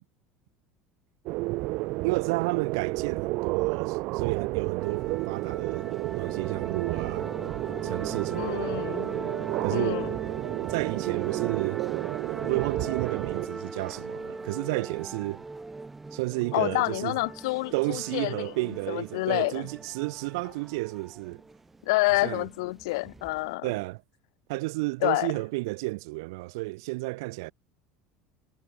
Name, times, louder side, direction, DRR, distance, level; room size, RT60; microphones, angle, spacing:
sound 1, 1.3-13.5, right 23 dB, 45° right, 1.0 m, -31 dB
voice 1, 2.0-5.9 6.2-7.3 7.8-8.8 9.6-10.1 10.7-11.8 12.5-15.4 16.1-17.2 17.7-21.4 22.1-22.4 23.6-24.0 24.5-27.5, right 24 dB, 75° right, 0.4 m, -31 dB
sound 2, 4.8-23.5, right 3 dB, 5° right, 0.4 m, -40 dB
voice 2, 8.3-9.1 9.7-10.1 16.5-18.5 18.9-19.7 21.9-23.7 25.0-25.3, left 23 dB, 80° left, 0.9 m, -28 dB
cardioid pair, 180°, 2 cm